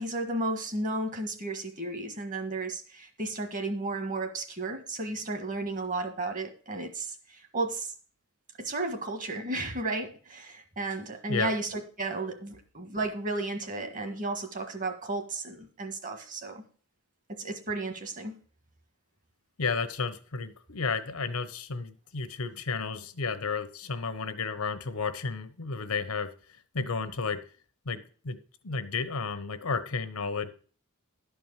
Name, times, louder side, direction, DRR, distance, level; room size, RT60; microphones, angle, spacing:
voice 1, 0.0-7.9 8.6-16.6 17.3-18.4, right 2 dB, 40° right, 6 dB, 1.6 m, -33 dB
voice 2, 19.6-26.3 26.7-27.4 27.8-28.4 28.6-30.5, left 4 dB, 85° left, 11 dB, 1.0 m, -32 dB
11.5 x 4.7 x 7.3 m, 0.43 s
head